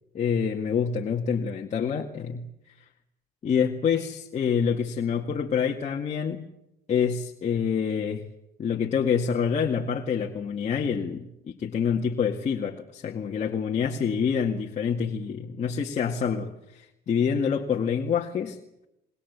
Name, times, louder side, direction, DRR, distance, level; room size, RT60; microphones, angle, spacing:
voice 1, 0.1-2.7 3.4-6.4 6.9-8.2 8.6-18.6, left 7 dB, 45° left, 1 dB, 2.0 m, -27 dB
26.0 x 21.5 x 8.2 m, 0.87 s
cardioid pair, 110°, 17 cm